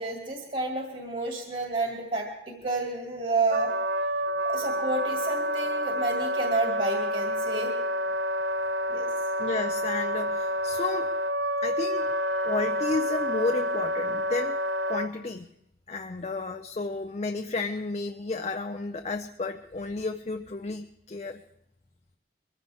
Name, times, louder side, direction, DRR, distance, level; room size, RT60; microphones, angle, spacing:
voice 1, 0.0-3.7 4.5-7.7 8.9-9.1, right 3 dB, 45° right, 1 dB, 2.2 m, -30 dB
Wind instrument woodwind instrument, 3.5-15.1, equal, 75° right, 0.8 m, -28 dB
voice 2, 9.4-11.1 11.6-12.1 12.4-14.6 14.9-15.5 15.9-21.4, left 3 dB, 35° left, 6 dB, 0.5 m, -32 dB
23.0 x 15.0 x 3.5 m, 0.84 s
head